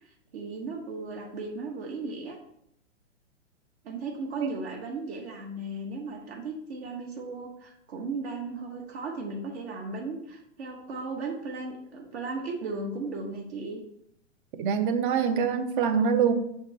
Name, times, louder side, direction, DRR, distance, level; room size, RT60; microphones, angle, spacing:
voice 1, 0.0-2.4 3.8-13.8, right 3 dB, 60° right, 0 dB, 1.4 m, -36 dB
voice 2, 14.6-16.3, right 7 dB, 45° right, 9 dB, 0.8 m, -24 dB
6.6 x 5.7 x 2.9 m, 0.74 s
hypercardioid pair, 135°, 37 cm